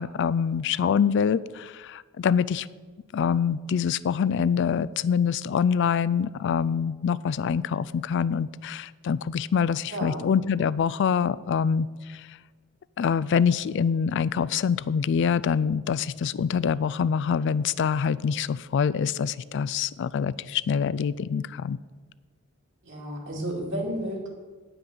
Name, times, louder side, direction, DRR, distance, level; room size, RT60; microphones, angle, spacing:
voice 1, 0.0-2.7 3.1-12.2 13.0-21.8, left 7 dB, 60° left, 19 dB, 0.3 m, -25 dB
voice 2, 9.9-10.3 22.8-24.3, right 1 dB, 60° right, -1 dB, 2.4 m, -32 dB
9.5 x 5.9 x 6.8 m, 1.4 s
head